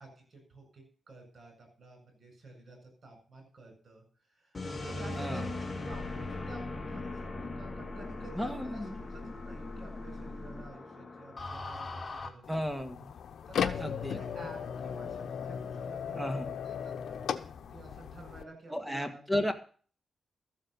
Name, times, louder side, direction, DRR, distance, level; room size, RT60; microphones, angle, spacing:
voice 1, 0.0-4.0 4.4-12.6 13.5-17.2 17.6-19.5, right 2 dB, 50° right, 4 dB, 7.7 m, -51 dB
sound 1, 4.5-12.3, left 2 dB, 25° left, 1.9 m, -39 dB
voice 2, 8.3-8.9 12.5-13.1 13.8-14.2 16.2-16.5 18.7-19.5, left 1 dB, 5° right, 7 dB, 1.8 m, -33 dB
sound 2, 12.4-18.4, left 7 dB, 80° left, 0.9 m, -36 dB
13.5 x 7.6 x 6.8 m, 0.42 s
cardioid pair, 105°, 0 cm